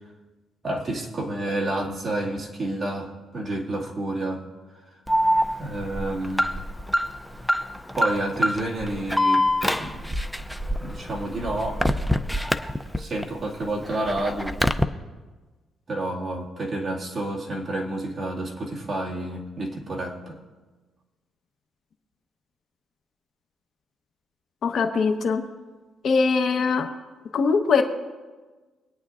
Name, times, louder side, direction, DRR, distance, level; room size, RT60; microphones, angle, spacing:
voice 1, 0.6-4.5 4.7-4.8 5.6-6.6 7.9-10.1 10.8-11.8 13.0-14.6 15.9-20.4, right 1 dB, 30° right, -3 dB, 2.1 m, -29 dB
Alarm, 5.1-13.2 13.6-14.8, equal, ahead, 0.5 m, -25 dB
voice 2, 24.6-25.4 26.0-26.9 27.3-27.8, left 5 dB, 50° left, 5 dB, 1.0 m, -21 dB
25.0 x 9.4 x 2.5 m, 1.3 s
cardioid pair, 140°, 0 cm